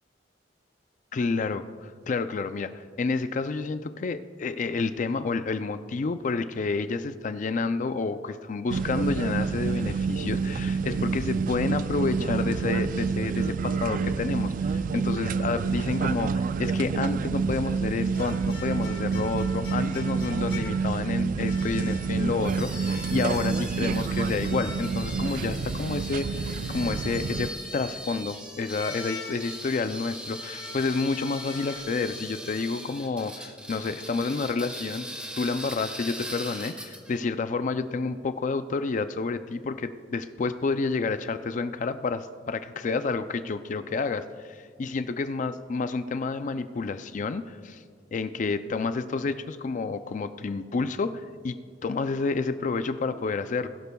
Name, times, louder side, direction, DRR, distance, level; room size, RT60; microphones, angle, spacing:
voice 1, 1.1-35.1 35.4-47.8 48.1-53.7, left 4 dB, 45° left, 11 dB, 0.4 m, -29 dB
sound 1, 8.7-27.5, right 5 dB, 50° right, 0.3 m, -28 dB
sound 2, 18.1-21.1 21.5-22.3 22.7-23.4 24.1-25.3 26.6-27.7 28.7-29.8 30.2-31.8, left 3 dB, 70° left, 2.4 m, -44 dB
sound 3, 22.4-37.2, equal, 5° right, 1.6 m, -40 dB
19.5 x 12.0 x 2.3 m, 2.1 s
head